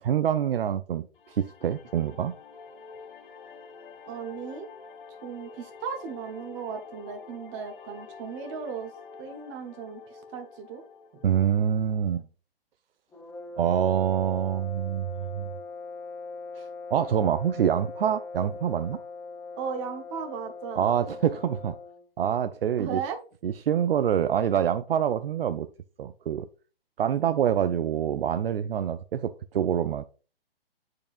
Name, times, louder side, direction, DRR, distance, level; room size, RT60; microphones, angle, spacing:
voice 1, 0.0-2.3 11.2-12.2 13.6-15.5 16.6-16.7 16.9-19.0 20.8-21.7 22.2-23.0 23.4-25.7 26.0-26.5 27.0-30.0, right 9 dB, 70° right, 0.5 m, -26 dB
sound 1, 1.1-12.2, left 5 dB, 55° left, 0.8 m, -47 dB
voice 2, 4.1-4.7 5.2-8.9 9.2-10.0 10.3-10.8 19.6-21.0 22.8-23.2, right 6 dB, 30° right, 1.1 m, -36 dB
sound 2, 13.1-22.1, left 4 dB, 10° left, 1.1 m, -41 dB
8.5 x 4.7 x 2.5 m
figure-of-eight pair, 130°, 30 cm